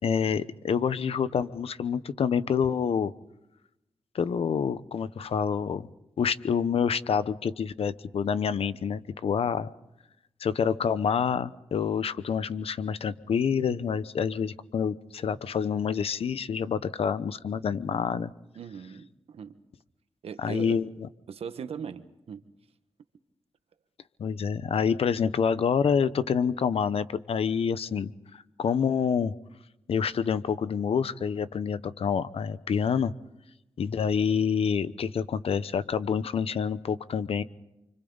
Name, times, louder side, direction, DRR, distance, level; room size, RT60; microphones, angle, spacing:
voice 1, 0.0-3.1 4.1-5.9 6.2-9.7 10.4-18.3 20.4-20.8 24.2-29.3 29.9-33.1 33.8-37.4, left 7 dB, 80° left, 14 dB, 0.9 m, -27 dB
voice 2, 18.5-19.6 20.2-20.8 21.3-22.4, right 7 dB, 85° right, 10 dB, 1.4 m, -39 dB
29.0 x 26.0 x 4.0 m, 0.92 s
cardioid pair, 65°, 10 cm